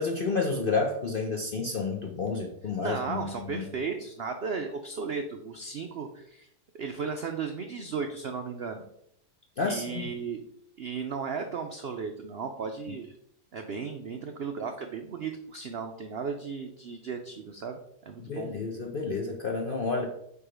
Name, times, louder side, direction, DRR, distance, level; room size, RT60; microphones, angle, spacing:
voice 1, 0.0-3.6 9.6-10.0 18.2-20.1, left 4 dB, 60° left, 2 dB, 0.5 m, -30 dB
voice 2, 2.8-6.5 6.7-8.8 9.6-10.4 10.8-13.1 13.5-18.5, right 5 dB, 90° right, 5 dB, 0.5 m, -35 dB
4.8 x 4.7 x 5.0 m, 0.74 s
omnidirectional pair, 1.8 m